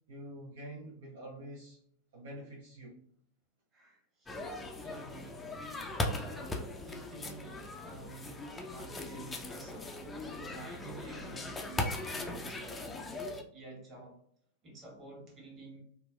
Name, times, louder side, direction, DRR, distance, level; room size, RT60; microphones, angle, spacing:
voice 1, 0.1-1.8 2.1-2.9, right 1 dB, 65° right, -3 dB, 0.7 m, -46 dB
voice 2, 3.7-4.4 4.8-5.6 5.9-13.2 13.5-14.2 14.6-15.8, right 2 dB, 30° right, -2 dB, 1.3 m, -50 dB
sound 1, 4.3-13.4, left 2 dB, 15° left, 0.4 m, -39 dB
3.9 x 2.2 x 2.3 m, 0.65 s
figure-of-eight pair, 90°, 0 cm